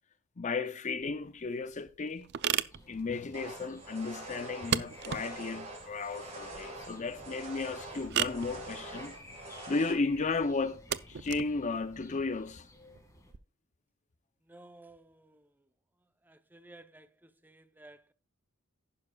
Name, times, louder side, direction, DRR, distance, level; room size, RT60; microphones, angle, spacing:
voice 1, 0.4-2.3 2.9-9.1 9.4-12.7, left 3 dB, 35° left, 0.5 m, -34 dB
sound 1, 1.0-13.4, right 9 dB, 50° right, 0.4 m, -38 dB
sound 2, 2.7-13.3, left 1 dB, 15° left, 1.9 m, -55 dB
sound 3, 3.3-9.9, right 2 dB, 30° right, 3.9 m, -45 dB
voice 2, 14.5-15.5 16.2-18.1, right 2 dB, 10° right, 0.6 m, -55 dB
11.0 x 9.9 x 2.3 m
head